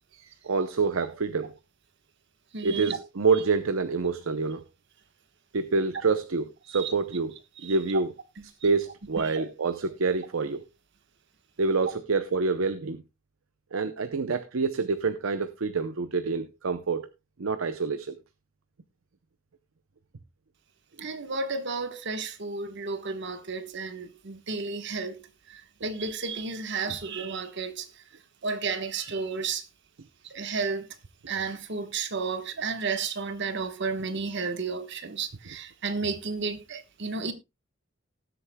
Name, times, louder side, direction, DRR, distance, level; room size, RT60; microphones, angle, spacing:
voice 1, 0.1-1.5 2.6-4.6 5.5-7.3 7.6-8.1 8.6-10.6 11.6-13.0 13.7-17.1 17.4-18.1 21.0-21.1, right 4 dB, 85° right, 0.7 m, -27 dB
voice 2, 2.5-3.0 6.7-6.9 7.6-7.8 9.2-9.4 21.0-28.0 28.4-29.7 30.2-30.9 31.3-37.3, right 4 dB, 60° right, 1.2 m, -32 dB
19.5 x 8.1 x 2.2 m
head